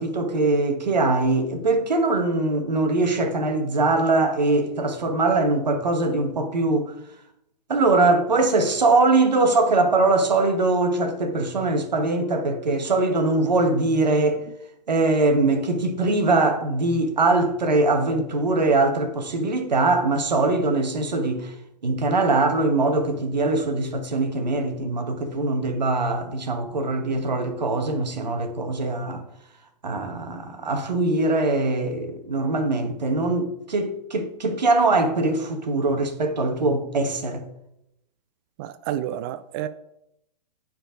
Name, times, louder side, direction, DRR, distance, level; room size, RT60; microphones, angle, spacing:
voice 1, 0.0-6.9 7.7-14.4 14.9-21.5 21.8-29.2 29.8-37.4, right 2 dB, 85° right, 1.5 m, -22 dB
voice 2, 38.6-39.7, right 11 dB, 35° right, 0.4 m, -30 dB
8.9 x 4.5 x 5.1 m
hypercardioid pair, 125°, 21 cm